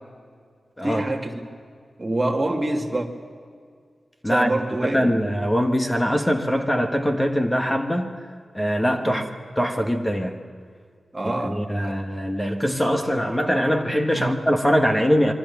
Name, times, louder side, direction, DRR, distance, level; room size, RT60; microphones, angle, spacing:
voice 1, 0.8-1.4 2.0-3.1 4.3-5.1 9.0-9.2 11.1-12.0 14.1-14.4, right 1 dB, 20° right, 2.4 m, -26 dB
voice 2, 4.8-8.2 8.5-9.2 9.6-10.4 11.2-15.3, equal, 10° left, 1.3 m, -22 dB
26.0 x 23.5 x 7.2 m
wide cardioid pair, 160°, 0 cm